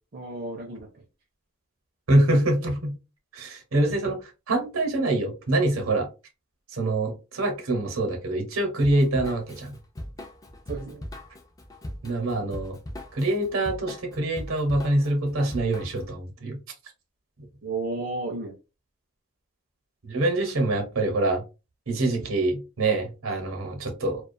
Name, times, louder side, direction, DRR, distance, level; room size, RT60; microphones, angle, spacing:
voice 1, 0.1-0.9 10.7-11.0 17.6-18.5, right 3 dB, 45° right, 0.5 m, -32 dB
voice 2, 2.1-2.9 3.3-4.2 4.5-6.1 6.7-9.7 12.0-12.8 13.1-16.6 20.0-21.4 21.9-24.2, right 2 dB, 80° right, 0.9 m, -25 dB
Drum kit / Drum, 8.8-16.1, left 1 dB, 15° left, 0.3 m, -40 dB
2.4 x 2.3 x 2.5 m
head